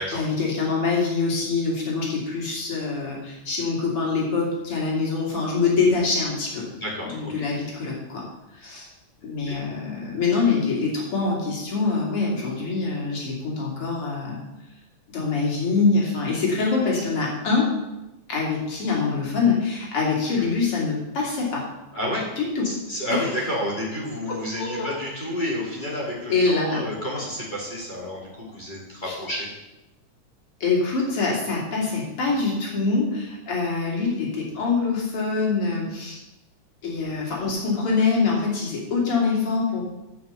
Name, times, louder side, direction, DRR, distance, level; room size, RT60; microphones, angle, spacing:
voice 1, 0.0-6.6 7.0-8.3 8.5-8.9 9.2-14.4 15.1-17.7 18.3-21.7 22.4-22.7 23.1-23.2 24.3-25.0 26.3-26.8 29.0-29.1 30.6-36.2 36.8-39.8, left 4 dB, 50° left, -3 dB, 3.5 m, -24 dB
voice 2, 6.7-7.5 9.5-9.6 20.3-20.5 21.9-22.3 22.6-29.5, left 1 dB, 15° left, -5 dB, 2.6 m, -30 dB
9.6 x 5.8 x 6.9 m, 0.98 s
omnidirectional pair, 3.4 m